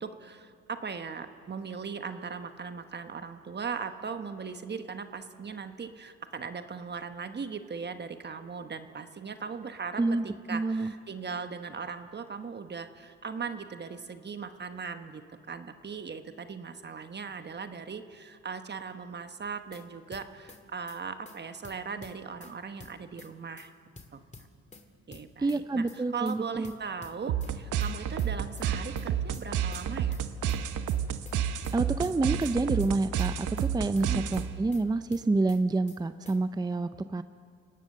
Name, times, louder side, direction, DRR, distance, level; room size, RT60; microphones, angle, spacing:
voice 1, 0.0-10.0 10.5-23.7 24.1-24.2 25.1-30.2 34.0-34.3, right 5 dB, 35° right, 8 dB, 1.2 m, -39 dB
voice 2, 10.5-10.9 25.4-26.7 31.7-37.2, right 3 dB, 15° right, 11 dB, 0.5 m, -28 dB
sound 1, 19.5-19.8 20.1-20.6 20.9-21.0 21.3-21.4 21.6-22.5 22.8-23.3 23.6-23.7 24.0-24.8 25.1-25.6 25.9-26.0 26.3-26.4 26.6-27.5 27.8-28.3 28.6-28.7 29.0-29.8 30.1-30.6 30.9-31.0 31.3-31.4 31.6-32.5 32.8-33.3 33.6-33.7 34.0-34.8 35.1-35.6 35.9-36.0 36.3-36.4, left 3 dB, 25° left, 2.2 m, -50 dB
sound 2, 27.3-34.7, right 9 dB, 75° right, 1.0 m, -31 dB
29.5 x 17.5 x 6.6 m, 2.2 s
cardioid pair, 90°, 30 cm